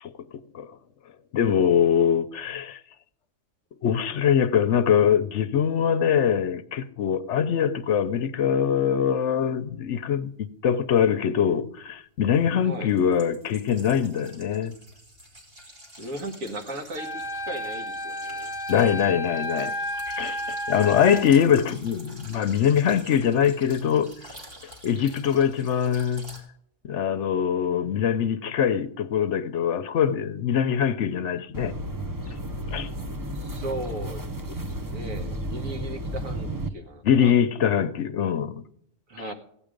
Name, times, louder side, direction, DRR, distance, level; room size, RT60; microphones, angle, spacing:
voice 1, 1.3-2.8 3.8-10.3 10.6-14.7 18.7-19.7 20.1-24.1 24.8-26.4 26.8-31.7 32.7-32.9 37.0-38.6, left 8 dB, 65° left, 0.9 m, -23 dB
sound 1, 11.0-11.1 12.3-26.4, equal, 45° right, 3.2 m, -48 dB
voice 2, 12.6-12.9 16.0-18.5 33.3-37.3 39.1-39.3, right 1 dB, 75° right, 2.0 m, -37 dB
Wind instrument woodwind instrument, 17.0-21.3, equal, 20° left, 1.1 m, -32 dB
sound 2, 31.5-36.7, right 1 dB, 20° right, 0.6 m, -33 dB
16.0 x 8.7 x 5.1 m
omnidirectional pair, 1.4 m